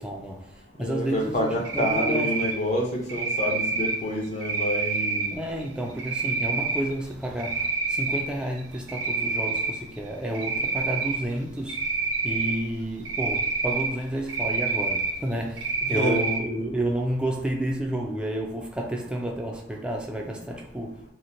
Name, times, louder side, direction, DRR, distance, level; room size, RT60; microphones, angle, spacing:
voice 1, 0.0-2.5 5.3-11.9 12.2-21.0, right 1 dB, 5° right, 0.3 m, -31 dB
voice 2, 0.8-5.3 15.9-16.2, left 1 dB, 40° left, 0.6 m, -28 dB
Cricket, 1.6-2.5 3.1-4.0 4.4-5.3 6.0-6.8 7.2-8.2 8.6-9.7 10.3-11.2 11.7-12.6 13.1-13.9 14.3-15.1 15.6-16.4, right 4 dB, 80° right, 0.5 m, -27 dB
2.8 x 2.1 x 2.6 m
head